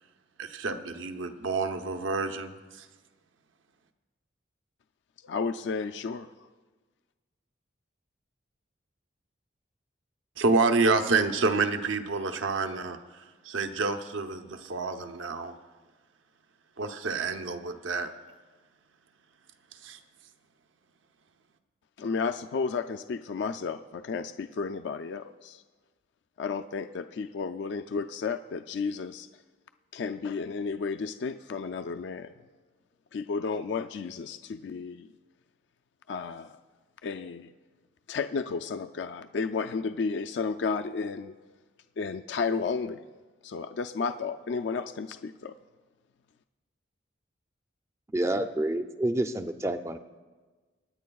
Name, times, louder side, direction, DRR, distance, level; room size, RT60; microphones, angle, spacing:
voice 1, 0.4-2.5 10.4-13.0 13.4-15.5 16.8-18.1 19.8-20.0, right 3 dB, 85° right, 6 dB, 0.8 m, -28 dB
voice 2, 5.2-6.3 22.0-25.6 26.4-29.3 29.9-32.3 33.1-35.1 36.1-36.6 37.0-37.5 38.1-41.3 42.0-43.0 43.4-45.6, left 5 dB, 65° left, 9 dB, 0.3 m, -32 dB
voice 3, 48.1-50.0, right 1 dB, 15° right, 8 dB, 0.4 m, -28 dB
25.5 x 9.8 x 2.3 m, 1.3 s
head